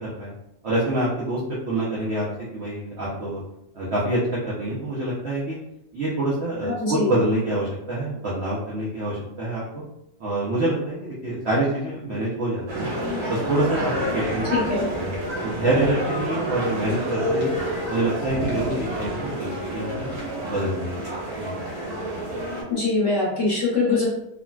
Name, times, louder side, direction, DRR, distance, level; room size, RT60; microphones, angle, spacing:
voice 1, 0.0-0.3 0.6-1.4 1.7-2.3 2.5-3.4 3.7-5.6 5.9-9.6 10.2-12.9 13.3-14.4 15.0-15.1 15.4-17.5 17.9-20.1 20.4-21.0 21.4-21.5, right 1 dB, 60° right, -7 dB, 0.7 m, -26 dB
voice 2, 6.6-7.1 14.5-14.8 22.7-24.0, left 3 dB, 45° left, -7 dB, 1.2 m, -23 dB
sound 1, 12.7-22.6, right 1 dB, 45° right, 1.0 m, -29 dB
3.6 x 2.2 x 2.3 m, 0.82 s
omnidirectional pair, 1.8 m